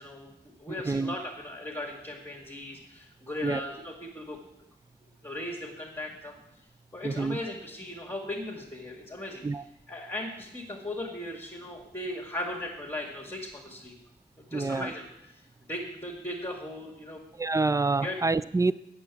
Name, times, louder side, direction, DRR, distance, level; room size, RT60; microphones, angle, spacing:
voice 1, 0.0-4.4 5.2-6.4 6.9-9.4 9.9-14.0 14.4-17.2 18.0-18.2, left 1 dB, 15° left, -3 dB, 1.8 m, -38 dB
voice 2, 0.7-1.1 3.4-3.6 7.0-7.4 9.4-9.6 14.5-14.9 17.4-18.7, right 3 dB, 15° right, 16 dB, 0.4 m, -27 dB
9.1 x 6.9 x 8.3 m, 0.85 s
wide cardioid pair, 105°, 19 cm